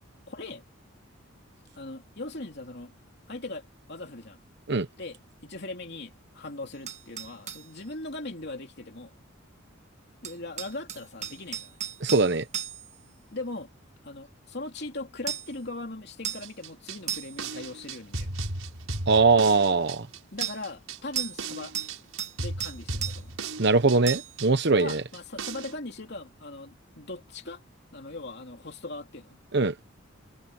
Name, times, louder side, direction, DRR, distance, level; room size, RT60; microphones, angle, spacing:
voice 1, 0.3-0.6 1.8-2.9 3.3-4.4 5.0-9.1 10.2-11.8 13.3-13.7 14.0-18.3 20.3-21.7 22.4-23.3 24.8-27.6 27.9-29.4, left 2 dB, 55° left, 3.1 m, -39 dB
sound 1, 6.9-7.7 10.2-13.0 15.3-15.6 16.2-16.5 17.1-17.5 20.4-20.6 21.2-21.5 21.7-22.4 22.6-23.2 24.1-24.4, right 8 dB, 35° right, 1.6 m, -34 dB
voice 2, 12.0-12.4 19.1-20.1 23.6-25.0 29.5-29.7, right 3 dB, 55° right, 1.0 m, -21 dB
sound 2, 16.4-25.8, right 3 dB, 80° right, 5.9 m, -36 dB
head